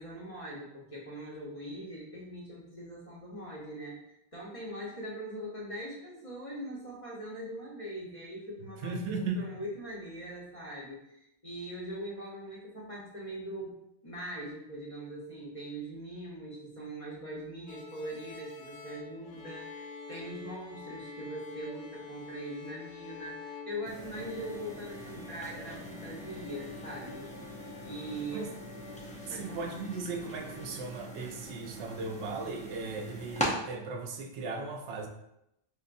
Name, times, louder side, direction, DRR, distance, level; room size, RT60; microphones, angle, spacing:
voice 1, 0.0-9.0 9.4-13.8 14.0-27.3 27.8-28.5 29.3-29.6, right 1 dB, 35° left, -4 dB, 0.9 m, -41 dB
voice 2, 8.8-9.6 28.3-28.5 29.3-35.1, right 4 dB, 85° right, 3 dB, 0.9 m, -37 dB
sound 1, 17.7-30.8, left 5 dB, 90° left, 0.9 m, -47 dB
sound 2, 23.9-33.5, equal, 10° left, 0.3 m, -42 dB
4.5 x 2.7 x 2.5 m, 0.81 s
omnidirectional pair, 1.1 m